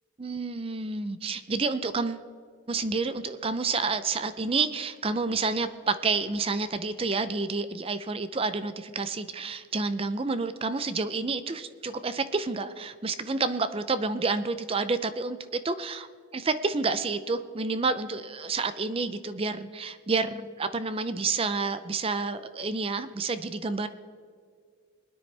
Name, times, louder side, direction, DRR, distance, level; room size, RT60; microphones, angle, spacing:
voice 1, 0.2-2.3 2.7-16.1 16.3-23.9, right 4 dB, 25° right, 12 dB, 0.5 m, -29 dB
22.0 x 9.8 x 3.3 m, 2.2 s
head